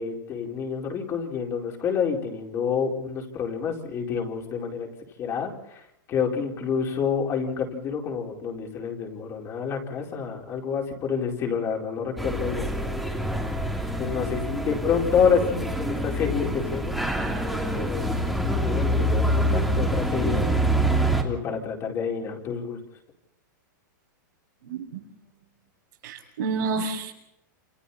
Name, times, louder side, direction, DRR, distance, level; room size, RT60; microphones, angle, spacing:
voice 1, 0.0-4.9 5.2-5.8 6.1-12.7 14.0-17.0 17.7-18.2 18.6-20.5 21.2-22.8, left 6 dB, 25° left, 1 dB, 4.7 m, -28 dB
sound 1, 12.2-21.2, right 1 dB, ahead, 3.0 m, -26 dB
voice 2, 24.6-25.0 26.0-27.1, right 4 dB, 75° right, -4 dB, 6.3 m, -29 dB
29.0 x 28.5 x 4.3 m, 0.83 s
supercardioid pair, 155°, 11 cm